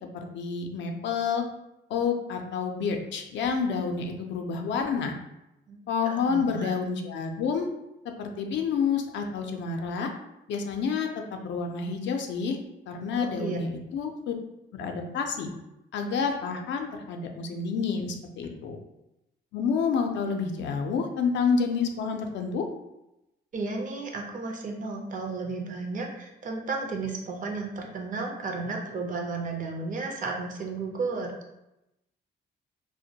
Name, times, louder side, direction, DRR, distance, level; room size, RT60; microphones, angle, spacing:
voice 1, 0.1-1.4 1.9-5.1 5.9-7.7 8.2-10.1 10.5-12.6 12.9-14.3 14.7-15.5 15.9-18.8 19.5-22.6, left 5 dB, 65° left, 4 dB, 0.4 m, -29 dB
voice 2, 6.3-6.8 13.2-13.6 23.5-31.3, right 3 dB, 40° right, 2 dB, 0.5 m, -33 dB
2.1 x 2.1 x 2.7 m, 0.90 s
cardioid pair, 90°, 20 cm